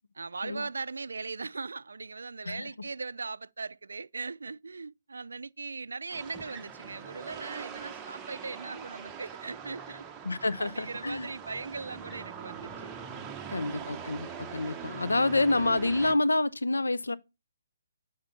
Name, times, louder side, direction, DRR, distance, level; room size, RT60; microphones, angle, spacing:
voice 1, 0.1-10.0 10.6-12.9 13.4-13.9, right 4 dB, 75° right, 0.4 m, -39 dB
sound 1, 6.1-16.1, right 7 dB, 15° right, 0.9 m, -42 dB
voice 2, 10.2-11.3 13.5-17.2, left 2 dB, 85° left, 0.7 m, -28 dB
8.9 x 5.1 x 5.4 m
figure-of-eight pair, 140°, 0 cm